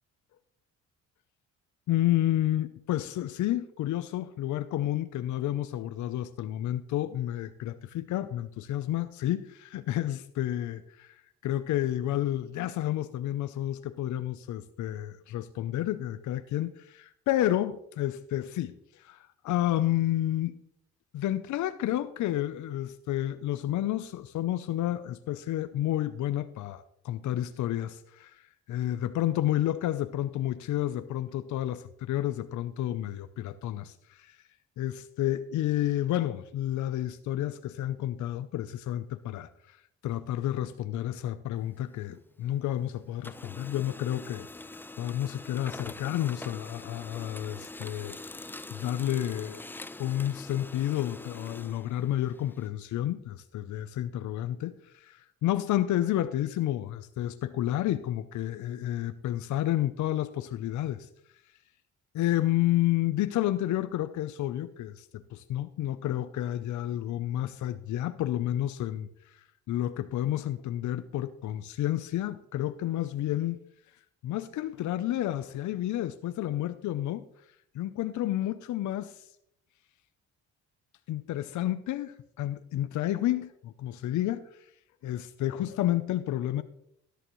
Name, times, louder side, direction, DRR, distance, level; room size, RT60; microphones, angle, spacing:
voice 1, 1.9-11.1 11.4-20.6 21.1-34.4 34.8-39.8 40.0-44.5 45.0-48.2 48.7-49.6 50.0-61.1 62.1-69.4 69.7-73.6 74.2-77.2 77.7-79.1 81.1-84.4 85.0-86.6, left 13 dB, 75° left, 0.6 m, -30 dB
Printer, 41.6-42.8 43.1-52.7, left 2 dB, 5° left, 0.3 m, -44 dB
13.5 x 11.5 x 3.1 m
cardioid pair, 90°, 30 cm